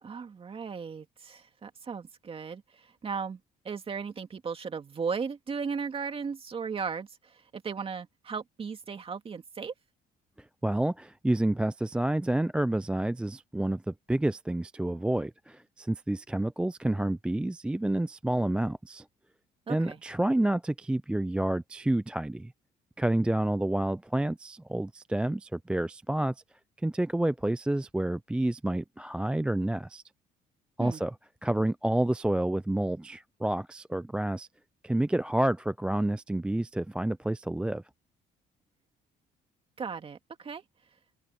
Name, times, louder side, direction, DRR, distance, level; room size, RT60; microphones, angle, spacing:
voice 1, 0.0-3.4 3.6-9.7 19.7-20.0 30.8-31.0 39.8-40.6, right 5 dB, 35° right, 2.4 m, -36 dB
voice 2, 10.6-19.1 19.7-22.5 23.0-26.3 26.8-30.0 30.8-31.1 31.4-34.5 34.8-37.8, right 1 dB, 5° right, 0.4 m, -29 dB
open air
cardioid pair, 110°, 17 cm